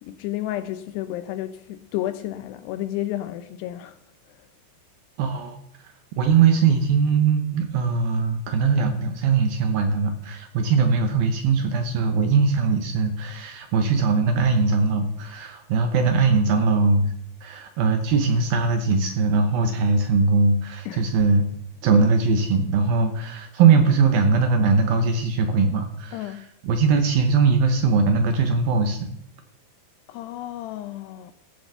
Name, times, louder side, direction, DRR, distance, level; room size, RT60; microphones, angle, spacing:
voice 1, 0.0-4.0 20.9-21.0 26.1-26.4 30.1-31.3, left 13 dB, 80° left, 2.5 m, -31 dB
voice 2, 5.2-5.6 6.2-17.1 17.4-21.4 21.8-29.1, right 4 dB, 70° right, 2.4 m, -20 dB
15.5 x 7.1 x 6.9 m
omnidirectional pair, 5.2 m